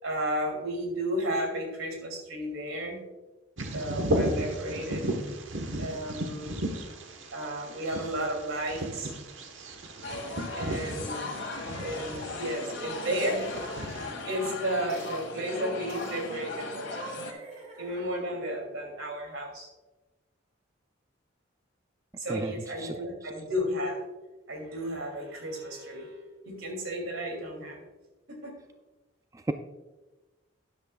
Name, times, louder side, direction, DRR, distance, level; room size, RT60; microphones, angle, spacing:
voice 1, 0.0-3.0 3.7-5.2 5.8-6.6 7.3-9.1 10.5-11.4 11.8-13.4 14.2-16.9 17.8-19.7 22.2-24.0 24.5-26.2 26.4-27.8 28.3-28.5, equal, 90° right, 2 dB, 2.8 m, -33 dB
Bird vocalization bird call bird song, 3.6-14.1, right 1 dB, 70° right, 1.2 m, -35 dB
sound 1, 10.0-17.3, left 3 dB, 60° left, 1.8 m, -37 dB
sound 2, 12.5-14.2 14.9-15.3 15.9-16.3 16.8-18.5, right 2 dB, 35° right, 2.1 m, -45 dB
voice 2, 22.3-22.5 22.8-23.0 29.3-29.5, right 2 dB, 15° right, 7 dB, 0.3 m, -31 dB
12.5 x 10.0 x 2.3 m, 1.1 s
head